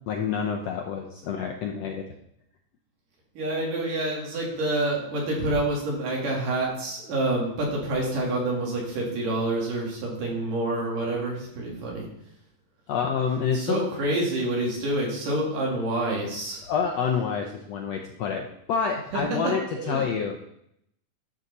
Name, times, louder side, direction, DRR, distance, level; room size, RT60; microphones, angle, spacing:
voice 1, 0.1-2.0 12.9-13.8 16.6-20.4, left 6 dB, 80° left, 2 dB, 1.5 m, -28 dB
voice 2, 3.4-12.0 13.5-16.7 19.1-20.0, right 2 dB, 75° right, -2 dB, 4.0 m, -27 dB
11.5 x 6.6 x 4.1 m, 0.76 s
omnidirectional pair, 3.8 m